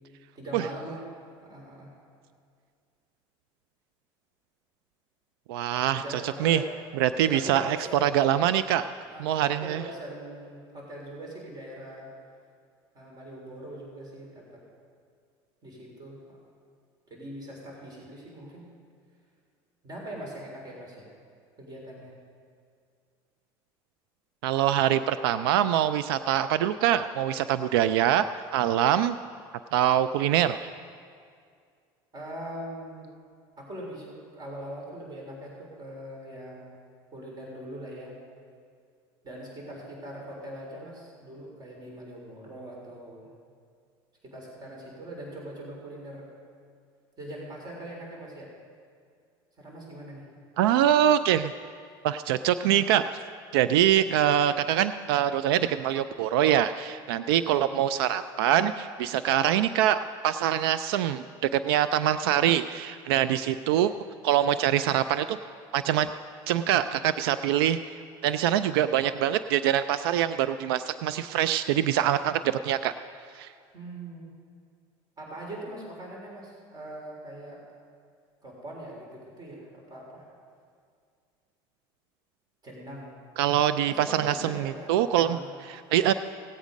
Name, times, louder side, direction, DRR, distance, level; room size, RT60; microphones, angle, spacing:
voice 1, 0.4-1.1 1.4-1.9 5.9-6.7 7.2-8.4 9.0-12.1 12.9-14.6 15.6-16.2 17.1-18.7 19.8-21.1 21.6-22.1 32.1-33.1 33.6-36.7 37.1-38.2 39.2-43.3 44.2-46.3 47.2-48.5 49.6-50.3 57.4-57.6 73.7-74.3 75.2-77.6 78.4-80.3 82.6-83.2 83.8-85.5, right 1 dB, 35° right, -2 dB, 3.8 m, -41 dB
voice 2, 5.5-6.6 7.0-7.8 8.0-8.8 9.2-9.8 24.4-28.2 28.5-29.2 29.7-30.7 50.6-51.5 52.0-53.0 53.5-60.0 60.2-63.9 64.2-65.4 65.7-66.1 66.5-67.8 68.2-72.9 73.4-73.5 83.4-85.4 85.7-86.1, right 11 dB, 90° right, 12 dB, 0.4 m, -24 dB
17.0 x 8.2 x 5.2 m, 2.2 s
supercardioid pair, 100°, 12 cm